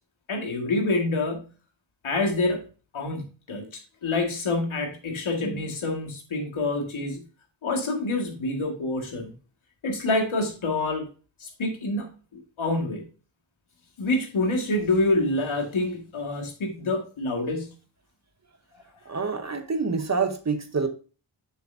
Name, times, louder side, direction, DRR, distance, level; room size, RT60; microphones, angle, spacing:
voice 1, 0.3-1.5 2.0-2.7 2.9-7.2 7.6-9.3 9.8-11.1 11.4-13.1 14.0-17.8, left 2 dB, 90° left, 2.0 m, -27 dB
voice 2, 19.1-20.9, right 4 dB, 35° right, 0.9 m, -27 dB
7.0 x 6.7 x 2.6 m
wide cardioid pair, 130°, 47 cm